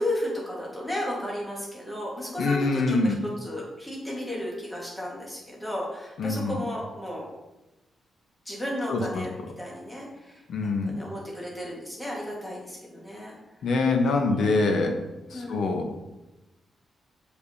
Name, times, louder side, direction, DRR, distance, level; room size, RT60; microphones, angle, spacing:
voice 1, 0.0-7.3 8.4-9.3 9.6-10.4 10.8-13.3 14.1-14.7 15.3-15.7, left 1 dB, 10° left, -4 dB, 1.5 m, -34 dB
voice 2, 2.4-3.2 6.2-6.6 8.9-9.2 10.5-10.9 13.6-15.0 15.3-15.9, left 3 dB, 65° left, 4 dB, 0.8 m, -24 dB
6.7 x 5.1 x 2.7 m, 1.0 s
wide cardioid pair, 175°, 0 cm